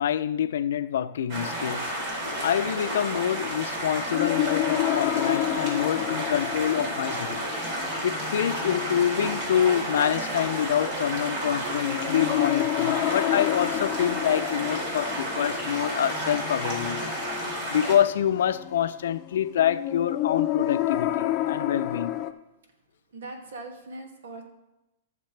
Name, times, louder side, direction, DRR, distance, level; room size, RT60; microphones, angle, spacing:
voice 1, 0.0-7.5 8.0-17.4 17.7-22.2, left 9 dB, 75° left, 0.5 m, -26 dB
sound 1, 1.3-17.9, right 1 dB, 50° right, 3.9 m, -31 dB
sound 2, 4.1-22.3, left 14 dB, 30° left, 0.6 m, -31 dB
voice 2, 23.1-24.4, right 2 dB, 80° right, 2.2 m, -40 dB
15.0 x 6.6 x 3.3 m
hypercardioid pair, 150°, 0 cm